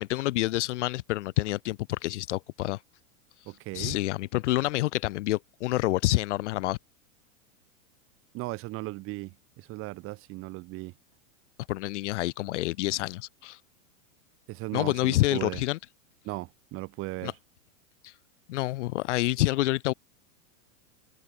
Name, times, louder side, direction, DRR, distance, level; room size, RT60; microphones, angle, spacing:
voice 1, 0.0-2.8 3.7-6.8 11.7-13.6 14.7-15.8 17.2-17.3 18.0-18.1 18.5-19.9, left 17 dB, 60° left, 0.7 m, -28 dB
voice 2, 3.5-4.0 8.3-10.9 14.5-15.6 16.2-17.3, right 21 dB, 30° right, 2.3 m, -37 dB
open air
supercardioid pair, 155°, 41 cm